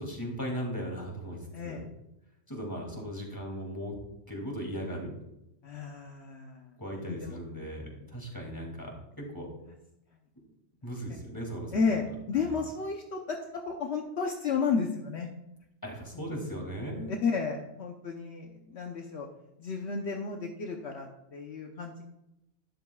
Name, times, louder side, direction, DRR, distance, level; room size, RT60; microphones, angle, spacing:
voice 1, 0.0-1.4 1.6-1.8 2.5-3.9 4.3-5.1 6.8-9.5 10.8-11.7 12.4-12.5 15.8-17.1, equal, 15° left, 0 dB, 2.5 m, -37 dB
voice 2, 1.5-1.9 5.6-6.7 7.1-7.4 11.1-11.2 11.7-15.3 16.1-16.3 17.1-19.3 19.6-22.0, left 5 dB, 65° left, 2 dB, 1.1 m, -32 dB
12.0 x 11.0 x 2.3 m, 0.88 s
omnidirectional pair, 1.3 m